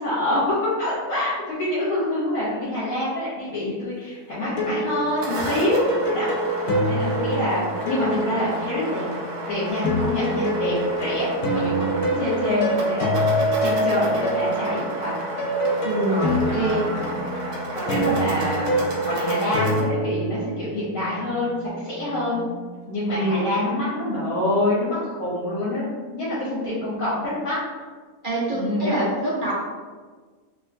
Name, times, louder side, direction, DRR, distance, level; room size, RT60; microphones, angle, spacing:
voice 1, 0.0-6.3 6.8-9.1 9.5-15.1 16.1-17.2 17.7-22.4 22.9-25.9 26.1-27.6 28.5-29.1, left 1 dB, 65° left, -9 dB, 1.4 m, -26 dB
sound 1, 4.5-9.2 9.8-21.1, equal, 90° left, 1.1 m, -26 dB
sound 2, 4.9-19.8, right 1 dB, 90° right, 1.3 m, -32 dB
sound 3, 5.0-11.5 12.6-22.9, left 3 dB, 70° right, 1.1 m, -43 dB
voice 2, 15.8-16.8 23.1-23.5 28.2-29.5, right 1 dB, 50° right, -7 dB, 0.6 m, -25 dB
3.5 x 2.7 x 2.6 m, 1.4 s
omnidirectional pair, 1.6 m